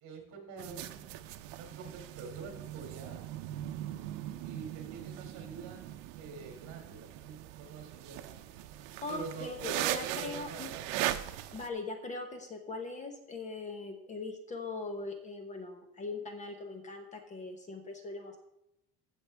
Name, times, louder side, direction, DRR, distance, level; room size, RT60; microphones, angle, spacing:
voice 1, 0.0-3.3 4.4-5.8 6.1-11.0, right 4 dB, 55° right, 3 dB, 2.9 m, -46 dB
sound 1, 0.6-11.7, right 13 dB, 80° right, 0.8 m, -39 dB
voice 2, 9.0-10.7 11.5-18.4, left 3 dB, 20° left, 5 dB, 1.0 m, -41 dB
16.0 x 6.2 x 3.4 m, 0.82 s
cardioid pair, 165°, 35 cm